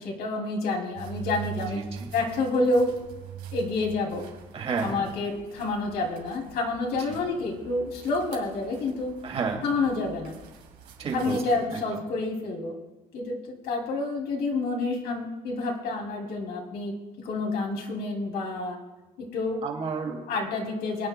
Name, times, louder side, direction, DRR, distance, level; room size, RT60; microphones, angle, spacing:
voice 1, 0.0-1.8 2.1-3.0 3.5-4.3 4.8-9.1 9.6-10.3 11.1-12.7 13.1-18.8 19.2-19.6 20.3-21.1, left 3 dB, 70° left, 0 dB, 2.6 m, -28 dB
sound 1, 0.9-11.6, right 9 dB, 85° right, 2.9 m, -44 dB
voice 2, 1.7-2.1 4.5-5.0 7.0-7.3 9.2-9.6 11.0-12.0 19.6-20.3, right 5 dB, 35° right, 1 dB, 2.2 m, -32 dB
25.5 x 9.5 x 2.2 m, 1.1 s
cardioid pair, 140°, 17 cm